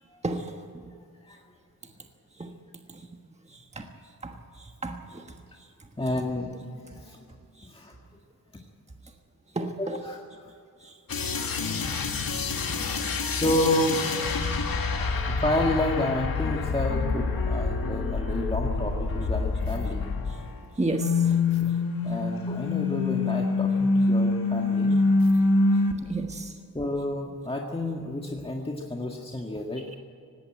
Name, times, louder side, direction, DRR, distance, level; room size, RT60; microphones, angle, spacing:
voice 1, 4.8-5.2 9.5-10.0 12.7-12.8 20.8-21.4 26.1-26.5, right 2 dB, 20° right, 4 dB, 1.3 m, -31 dB
voice 2, 6.0-7.3 7.7-8.0 9.8-10.5 12.8-13.0 13.3-14.4 15.3-20.0 21.6-21.8 22.0-25.0 26.7-29.9, left 1 dB, 15° left, 0 dB, 1.8 m, -30 dB
sound 1, 11.1-20.6 20.9-25.9, left 3 dB, 75° left, 2.0 m, -26 dB
18.5 x 16.5 x 9.1 m, 2.4 s
wide cardioid pair, 100°, 35 cm